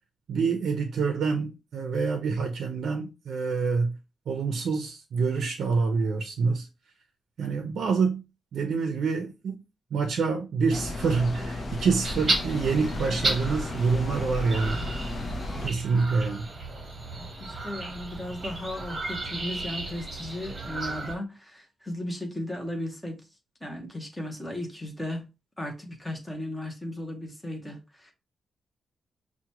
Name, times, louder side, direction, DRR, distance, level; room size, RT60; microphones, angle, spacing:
voice 1, 0.3-4.0 4.3-6.7 7.4-8.2 8.5-9.6 9.9-14.8 15.6-16.5, right 4 dB, 70° right, 0.5 m, -26 dB
sound 1, 10.7-15.7, left 2 dB, 35° left, 0.6 m, -34 dB
sound 2, 12.0-21.1, right 2 dB, 30° right, 1.0 m, -34 dB
voice 2, 17.1-23.3 23.6-25.3 25.6-28.1, left 1 dB, 5° left, 0.8 m, -36 dB
5.8 x 2.2 x 2.9 m
wide cardioid pair, 165°, 0 cm